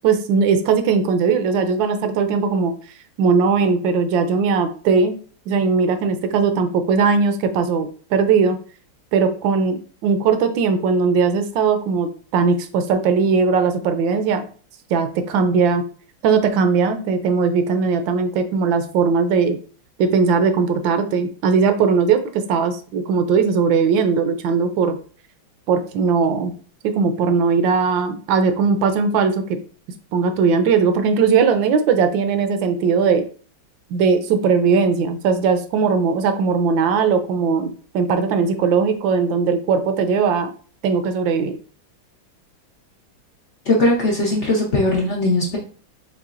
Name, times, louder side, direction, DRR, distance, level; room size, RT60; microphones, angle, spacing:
voice 1, 0.0-2.7 3.2-5.1 5.5-8.6 9.1-14.5 14.9-15.8 16.2-19.6 20.0-25.0 25.7-26.5 26.8-29.6 30.1-33.2 33.9-40.5 40.8-41.5, right 5 dB, 80° right, 8 dB, 1.3 m, -19 dB
voice 2, 43.7-45.6, left 2 dB, 55° left, -3 dB, 0.8 m, -19 dB
4.8 x 3.3 x 2.4 m, 0.41 s
omnidirectional pair, 2.1 m